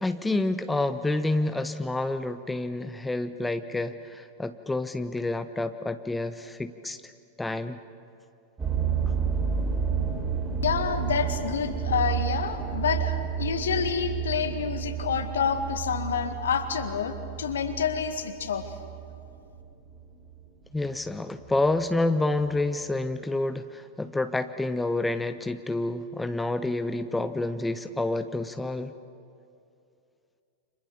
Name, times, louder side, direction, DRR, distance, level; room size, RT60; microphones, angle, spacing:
voice 1, 0.0-7.0 7.4-7.8 20.7-28.9, left 2 dB, 5° left, 10 dB, 0.8 m, -28 dB
sound 1, 8.6-20.9 21.4-21.8 22.4-22.5 22.8-22.9, right 7 dB, 20° right, 4.5 m, -31 dB
voice 2, 10.6-18.7, left 7 dB, 65° left, 8 dB, 1.9 m, -28 dB
29.5 x 26.5 x 7.1 m, 2.5 s
figure-of-eight pair, 90°, 0 cm